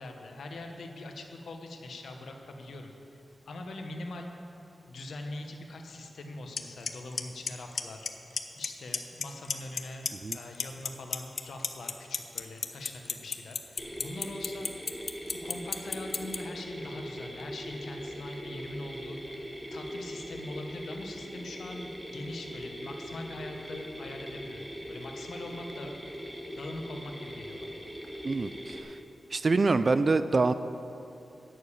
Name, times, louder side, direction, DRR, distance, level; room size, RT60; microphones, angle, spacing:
voice 1, 0.0-4.3 4.9-8.1 8.6-14.7 14.9-15.0 15.4-19.4 19.7-26.0 26.5-27.7, left 2 dB, 85° left, 4 dB, 1.1 m, -42 dB
Clock, 6.6-6.7 6.9-7.2 7.5-8.1 8.4-8.7 8.9-9.8 10.1-16.4, left 5 dB, 65° left, 0.6 m, -30 dB
Mechanisms, 13.8-28.8, equal, 5° right, 1.2 m, -41 dB
voice 2, 28.2-29.0 29.3-30.5, right 3 dB, 45° right, 12 dB, 0.3 m, -26 dB
9.3 x 6.6 x 8.6 m, 2.8 s
cardioid pair, 75°, 0 cm